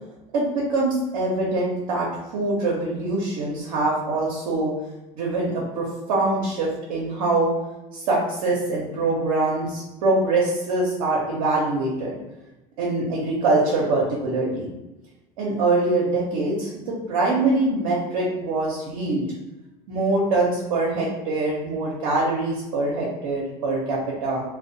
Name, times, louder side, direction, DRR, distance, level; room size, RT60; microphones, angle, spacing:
voice 1, 0.3-4.7 5.1-7.5 7.9-12.2 12.8-14.7 15.4-19.3 19.9-24.4, right 2 dB, 85° right, -4 dB, 0.6 m, -24 dB
2.4 x 2.1 x 2.6 m, 1.0 s
supercardioid pair, 90°, 18 cm